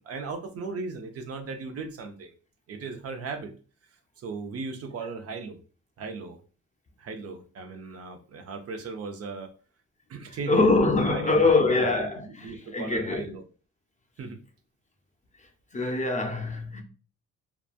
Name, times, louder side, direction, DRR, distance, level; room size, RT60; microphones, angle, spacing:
voice 1, 0.0-2.3 2.7-3.5 4.2-5.6 6.0-6.4 7.0-9.5 10.1-11.9 12.2-13.4 14.2-14.4, right 4 dB, 50° right, 0.5 m, -37 dB
voice 2, 10.5-13.3 15.7-16.8, left 3 dB, 25° left, 0.6 m, -24 dB
2.9 x 2.2 x 2.4 m
cardioid pair, 90°, 30 cm